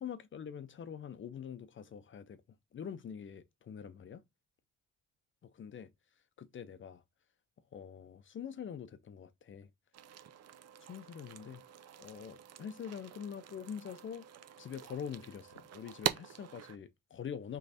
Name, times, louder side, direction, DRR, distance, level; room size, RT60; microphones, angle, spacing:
voice 1, 0.0-2.4 2.7-4.2 5.4-5.9 6.4-7.0 7.7-9.7 10.9-11.6 12.0-14.3 14.6-17.6, left 8 dB, 40° left, 0.6 m, -44 dB
sound 1, 9.9-16.8, right 10 dB, 55° right, 0.6 m, -43 dB
3.7 x 3.4 x 4.0 m
cardioid pair, 90°, 30 cm